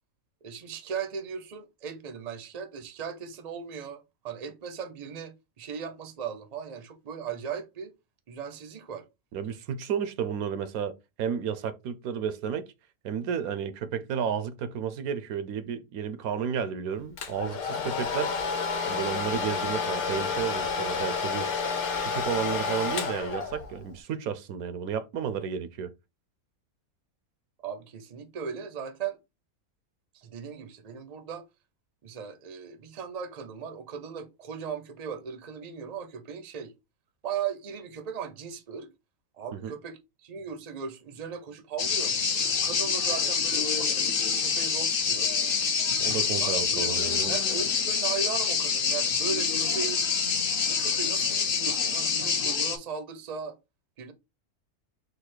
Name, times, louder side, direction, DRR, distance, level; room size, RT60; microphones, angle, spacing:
voice 1, 0.4-7.9 8.3-9.1 27.6-29.2 30.1-31.4 32.0-36.7 37.2-38.9 39.4-42.1 42.6-45.3 46.4-46.9 47.3-50.0 50.7-53.6 54.0-54.1, right 6 dB, 40° right, 0.6 m, -37 dB
voice 2, 9.3-12.7 13.0-18.3 18.8-21.5 22.0-25.9 39.5-39.7 46.0-47.3, right 7 dB, 80° right, 1.1 m, -32 dB
Domestic sounds home sounds, 17.2-23.9, left 5 dB, 90° left, 1.3 m, -30 dB
sound 1, 41.8-52.8, left 6 dB, 50° left, 0.7 m, -26 dB
4.0 x 2.7 x 4.4 m
omnidirectional pair, 1.5 m